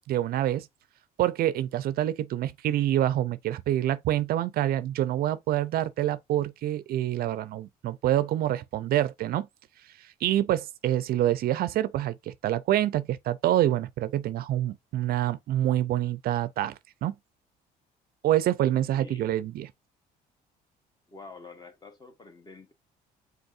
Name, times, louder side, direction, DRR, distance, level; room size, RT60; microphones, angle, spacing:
voice 1, 0.1-0.7 1.2-9.5 10.0-17.1 18.2-19.7, right 13 dB, 65° right, 0.5 m, -26 dB
voice 2, 18.9-19.4 21.1-22.7, left 4 dB, 25° left, 1.0 m, -47 dB
5.4 x 3.9 x 2.5 m
cardioid pair, 110°, 17 cm